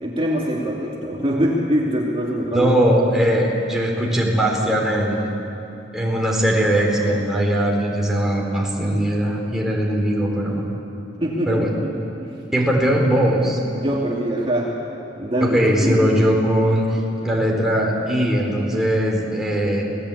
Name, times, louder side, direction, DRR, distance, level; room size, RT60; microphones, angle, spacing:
voice 1, 0.0-2.7 11.2-11.9 12.2-12.3 13.7-14.7 15.2-16.1, equal, 30° right, -3 dB, 2.6 m, -23 dB
voice 2, 2.5-5.3 5.9-10.7 11.5-11.7 12.5-13.9 15.5-16.9 17.2-19.8, equal, ahead, -2 dB, 4.1 m, -20 dB
28.0 x 18.5 x 8.6 m, 2.9 s
head